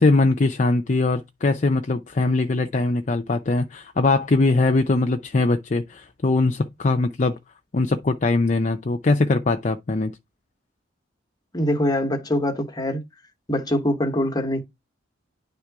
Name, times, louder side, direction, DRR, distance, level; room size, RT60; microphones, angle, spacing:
voice 1, 0.0-7.4 7.7-10.1, left 3 dB, 40° left, 0.5 m, -21 dB
voice 2, 11.5-13.0 13.5-14.6, left 1 dB, 20° left, 1.1 m, -23 dB
10.0 x 3.6 x 4.7 m
head